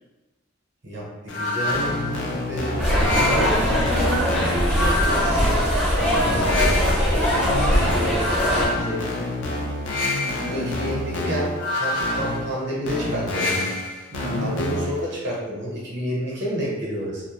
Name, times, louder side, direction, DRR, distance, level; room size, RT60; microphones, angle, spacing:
voice 1, 0.8-3.7 6.3-7.2 7.9-9.1 10.5-13.6 14.4-17.2, equal, 60° right, -6 dB, 0.8 m, -30 dB
sound 1, 1.3-15.1, left 2 dB, 65° left, 0.4 m, -27 dB
voice 2, 2.6-5.3 7.9-8.2 10.2-10.8 11.3-11.4 14.1-14.5, right 1 dB, 45° right, -7 dB, 0.4 m, -32 dB
sound 2, 2.8-8.7, equal, 5° left, 0.5 m, -21 dB
2.1 x 2.1 x 2.8 m, 1.2 s
head